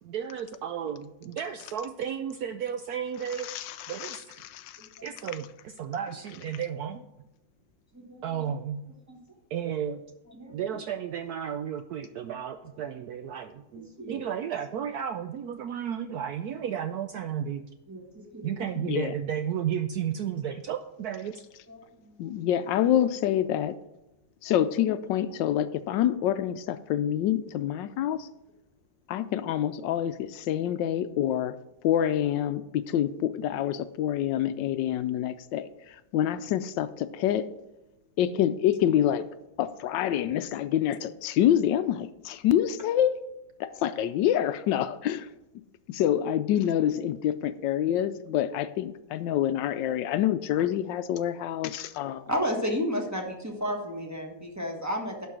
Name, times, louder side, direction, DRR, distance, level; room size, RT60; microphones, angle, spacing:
voice 1, 0.0-4.4 5.0-7.1 8.2-8.9 9.5-10.0 10.5-17.6 18.4-21.4, right 8 dB, 70° right, 8 dB, 0.9 m, -33 dB
voice 2, 3.4-4.8 18.8-19.1 22.2-23.8 24.4-28.3 29.1-31.6 31.8-37.5 38.2-39.2 39.6-43.1 43.6-45.3 45.9-52.3, left 11 dB, 75° left, 12 dB, 1.2 m, -27 dB
voice 3, 17.9-18.7 21.7-21.8 52.3-55.3, equal, 10° right, 1 dB, 1.2 m, -32 dB
11.5 x 4.7 x 6.1 m, 0.94 s
omnidirectional pair, 2.0 m